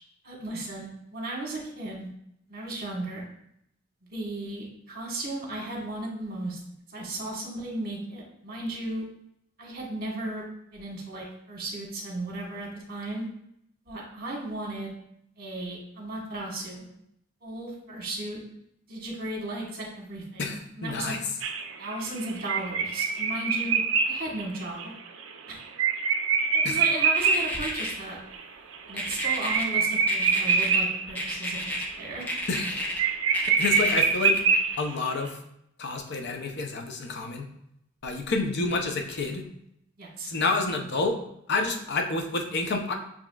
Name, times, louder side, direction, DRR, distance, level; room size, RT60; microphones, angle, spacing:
voice 1, 0.2-2.1 2.5-3.2 4.1-6.6 6.9-9.0 9.6-10.4 10.7-13.3 13.9-14.9 15.4-16.9 17.4-18.4 18.9-21.1 21.8-24.9 25.5-25.6 26.5-28.2 28.9-32.3 40.0-40.3, right 2 dB, 45° right, -2 dB, 1.3 m, -35 dB
voice 2, 20.4-21.2 26.6-26.8 32.5-32.8 33.5-34.4 34.8-35.4 35.8-37.5 38.0-39.4 40.3-41.2 41.5-42.9, left 3 dB, 55° left, 4 dB, 0.6 m, -29 dB
sound 1, 21.4-27.6 27.9-28.0 28.3-28.4 28.7-31.3 31.7-32.0 32.3-32.4 32.7-32.8 33.0-35.1, right 5 dB, 65° right, 0.5 m, -25 dB
sound 2, 27.1-27.9 29.0-29.6 30.1-30.8 31.1-31.8 32.2-33.0 33.3-34.7, equal, 10° left, 0.6 m, -32 dB
7.1 x 2.8 x 2.3 m, 0.76 s
head